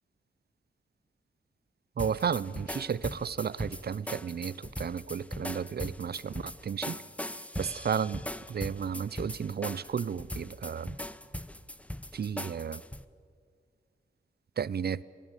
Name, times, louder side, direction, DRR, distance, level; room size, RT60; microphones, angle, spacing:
sound 1, 2.0-13.0, left 1 dB, 5° left, 0.8 m, -40 dB
voice 1, 2.0-7.0 7.6-8.2 8.5-10.9 12.1-12.8 14.6-15.0, right 7 dB, 65° right, 20 dB, 0.6 m, -33 dB
24.0 x 16.0 x 8.2 m, 2.1 s
cardioid pair, 55°, 18 cm